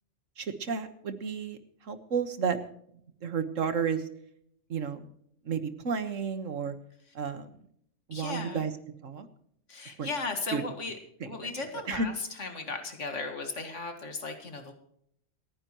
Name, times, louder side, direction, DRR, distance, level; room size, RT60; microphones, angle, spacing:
voice 1, 0.4-1.6 1.8-2.6 3.2-4.0 4.7-5.1 5.4-6.7 7.1-7.5 8.1-8.7 9.0-9.3 10.0-10.1 10.5-10.6 11.2-11.3 11.9-12.1, right 6 dB, 90° right, 10 dB, 1.8 m, -31 dB
voice 2, 8.1-8.6 9.7-11.0 11.2-12.1 12.4-14.7, left 3 dB, 70° left, 6 dB, 2.3 m, -36 dB
28.0 x 10.0 x 3.0 m, 0.71 s
omnidirectional pair, 1.3 m